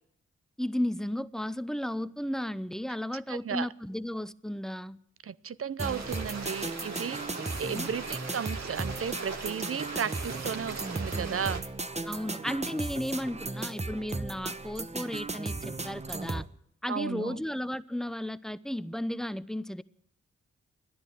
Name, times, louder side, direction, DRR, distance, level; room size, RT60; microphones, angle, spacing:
voice 1, 0.6-5.0 7.7-7.9 12.0-16.4 16.8-19.8, left 1 dB, ahead, 0.6 m, -34 dB
voice 2, 3.3-3.7 5.2-7.2 7.6-11.6 16.9-17.4, right 7 dB, 50° right, 0.6 m, -34 dB
sound 1, 5.8-16.5, right 3 dB, 20° right, 1.0 m, -36 dB
sound 2, 5.8-11.6, right 4 dB, 65° right, 1.9 m, -40 dB
12.5 x 10.5 x 8.1 m
cardioid pair, 40°, 29 cm